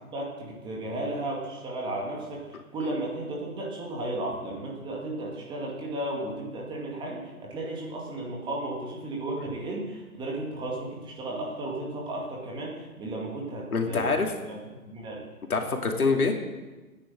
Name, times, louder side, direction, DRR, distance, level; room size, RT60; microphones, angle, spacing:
voice 1, 0.0-14.2 14.5-14.6 14.8-15.3, right 2 dB, 10° right, -2 dB, 2.1 m, -34 dB
voice 2, 13.7-14.3 15.5-16.4, left 4 dB, 75° left, 3 dB, 2.6 m, -25 dB
14.5 x 10.0 x 7.6 m, 1.2 s
hypercardioid pair, 150°, 44 cm